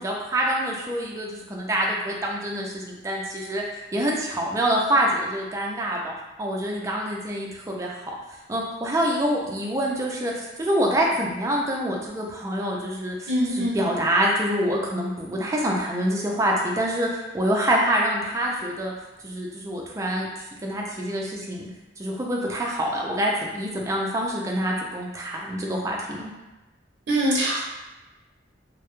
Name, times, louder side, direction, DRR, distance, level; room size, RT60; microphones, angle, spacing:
voice 1, 0.0-6.1 6.4-8.0 8.5-18.9 19.2-20.3 20.6-21.7 22.0-26.3, right 1 dB, 15° right, -2 dB, 0.3 m, -26 dB
voice 2, 13.3-13.8 27.1-27.6, equal, 80° right, -5 dB, 0.5 m, -23 dB
2.2 x 2.0 x 2.9 m, 1.1 s
head